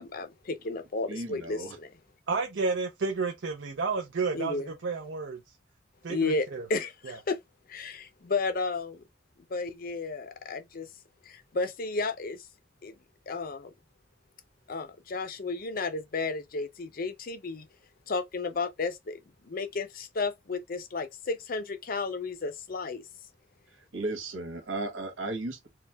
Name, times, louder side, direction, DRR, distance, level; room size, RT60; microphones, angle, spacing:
voice 1, 0.0-1.9 4.3-4.7 6.1-7.4 7.7-9.0 9.5-10.9 11.3-12.4 12.8-13.0 13.3-13.7 14.7-17.7 18.1-23.0, left 3 dB, 50° left, 0.6 m, -33 dB
voice 2, 1.1-1.8 23.9-25.7, right 2 dB, 85° right, 1.6 m, -35 dB
voice 3, 2.3-5.4 6.0-6.7 7.0-7.2, right 4 dB, 65° right, 0.6 m, -31 dB
4.4 x 2.3 x 3.3 m
head